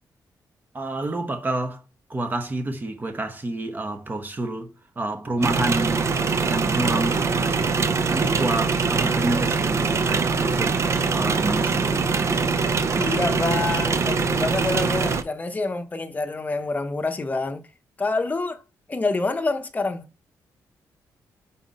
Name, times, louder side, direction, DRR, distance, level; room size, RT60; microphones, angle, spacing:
voice 1, 0.7-1.8 2.1-6.1 6.5-7.8 8.1-12.1, right 2 dB, 25° right, 1.0 m, -29 dB
sound 1, 5.4-15.2, right 4 dB, 45° right, 0.6 m, -23 dB
voice 2, 13.0-17.6 18.0-18.6 18.9-20.1, left 3 dB, 25° left, 0.9 m, -27 dB
5.3 x 4.2 x 5.2 m
cardioid pair, 120°, 7 cm